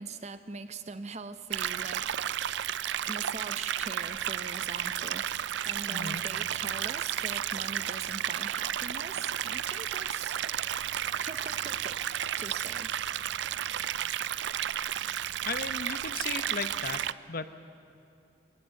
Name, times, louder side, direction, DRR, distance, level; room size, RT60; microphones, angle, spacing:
voice 1, 0.0-2.2 3.1-5.3 5.6-10.4 11.2-12.9, right 4 dB, 35° right, 10 dB, 0.8 m, -42 dB
sound 1, 1.5-17.1, right 10 dB, 70° right, 0.4 m, -32 dB
voice 2, 5.9-6.2 15.4-17.0 17.3-17.5, left 4 dB, 50° left, 10 dB, 0.9 m, -35 dB
20.5 x 18.5 x 7.8 m, 2.7 s
head